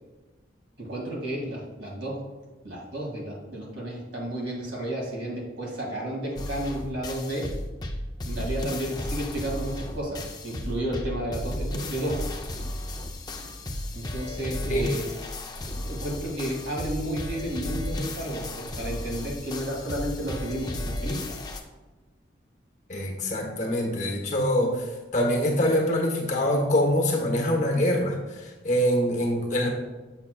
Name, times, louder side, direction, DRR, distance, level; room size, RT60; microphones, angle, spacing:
voice 1, 0.8-2.3 2.6-7.5 8.3-12.3 13.9-15.1 15.8-21.4, right 1 dB, 80° right, -3 dB, 2.0 m, -32 dB
sound 1, 6.4-21.6, left 1 dB, 20° left, 0.4 m, -34 dB
voice 2, 22.9-24.8 25.1-28.1 28.6-29.7, equal, 40° left, 1 dB, 1.0 m, -24 dB
7.2 x 5.9 x 2.2 m, 1.2 s
head